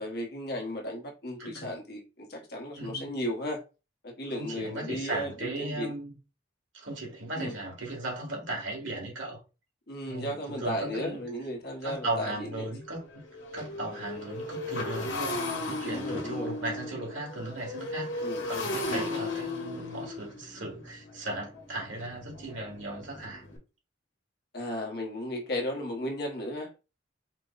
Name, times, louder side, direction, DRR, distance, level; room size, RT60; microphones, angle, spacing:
voice 1, 0.0-3.6 4.0-5.9 7.3-7.5 9.9-12.7 15.8-16.5 18.2-19.1 24.5-26.9, equal, 60° left, 1.2 m, -35 dB
voice 2, 2.8-3.1 4.3-6.1 6.7-9.4 10.1-11.2 11.8-13.0 13.5-23.4, right 2 dB, 85° right, 2.2 m, -37 dB
Motorcycle, 11.0-11.1 11.5-11.7 12.0-23.6, left 2 dB, 80° left, 1.3 m, -36 dB
4.3 x 2.2 x 4.0 m
head